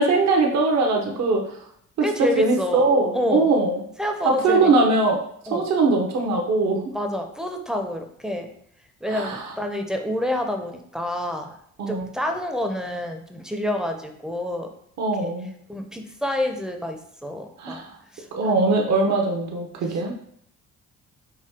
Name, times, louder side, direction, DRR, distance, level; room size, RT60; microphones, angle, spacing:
voice 1, 0.0-1.4 2.0-3.8 4.2-5.2 5.5-6.8 9.1-9.5 11.8-12.1 15.0-15.5 17.6-17.9 18.3-20.1, right 3 dB, 65° right, 1 dB, 0.8 m, -21 dB
voice 2, 2.0-2.9 3.1-3.5 4.0-4.7 5.5-5.7 6.9-8.5 9.0-11.6 11.9-14.7 15.1-15.3 15.7-17.8 18.1-18.7, left 1 dB, ahead, 3 dB, 0.5 m, -28 dB
4.8 x 2.7 x 3.5 m, 0.67 s
cardioid pair, 90°, 30 cm